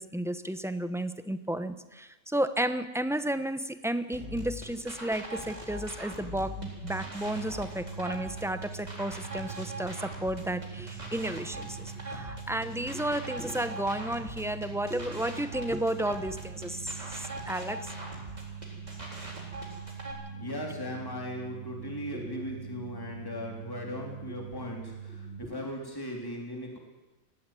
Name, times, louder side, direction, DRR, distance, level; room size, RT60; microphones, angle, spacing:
voice 1, 0.0-17.9 22.1-22.4, right 1 dB, ahead, 11 dB, 0.7 m, -33 dB
sound 1, 4.1-20.1, equal, 30° right, 4.3 m, -42 dB
sound 2, 6.5-25.4, right 6 dB, 80° left, 4.6 m, -43 dB
voice 2, 20.4-26.8, left 1 dB, 15° left, 0 dB, 3.7 m, -38 dB
20.0 x 15.0 x 9.2 m, 1.1 s
omnidirectional pair, 1.5 m